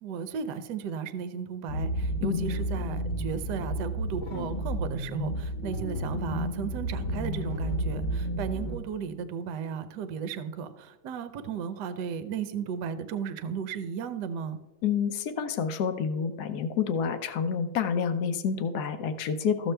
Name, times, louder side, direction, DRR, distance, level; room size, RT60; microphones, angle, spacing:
voice 1, 0.0-14.6, right 7 dB, 65° right, 11 dB, 1.1 m, -35 dB
sound 1, 1.7-8.8, equal, 45° left, 1.1 m, -31 dB
voice 2, 14.8-19.7, left 6 dB, 65° left, 10 dB, 1.0 m, -28 dB
14.0 x 7.0 x 3.3 m, 1.1 s
omnidirectional pair, 2.3 m